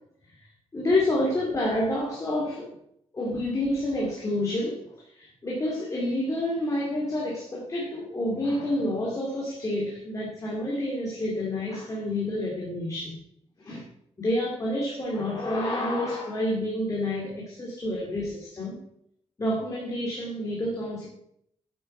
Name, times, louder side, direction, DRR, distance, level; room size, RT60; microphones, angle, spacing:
voice 1, 0.7-2.7 3.1-4.8 5.1-13.2 13.6-13.8 14.2-18.8 19.4-21.1, left 1 dB, 25° left, -3 dB, 2.7 m, -28 dB
10.5 x 8.5 x 4.5 m, 0.72 s
wide cardioid pair, 135°, 12 cm